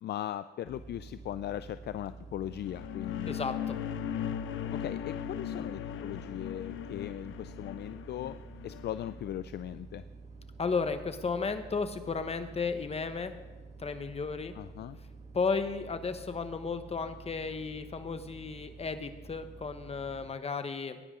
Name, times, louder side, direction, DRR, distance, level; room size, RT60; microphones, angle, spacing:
voice 1, 0.0-3.4 4.7-8.3 8.6-10.0 14.5-15.0, left 12 dB, 55° left, 13 dB, 0.4 m, -39 dB
sound 1, 0.6-20.3, right 4 dB, 35° right, 1.6 m, -49 dB
sound 2, 2.5-9.2, left 9 dB, 80° left, 0.8 m, -38 dB
voice 2, 3.3-3.8 10.6-13.3 13.8-14.6 15.3-21.0, left 4 dB, 30° left, 9 dB, 1.1 m, -34 dB
18.5 x 9.9 x 3.8 m, 1.3 s
cardioid pair, 90°, 20 cm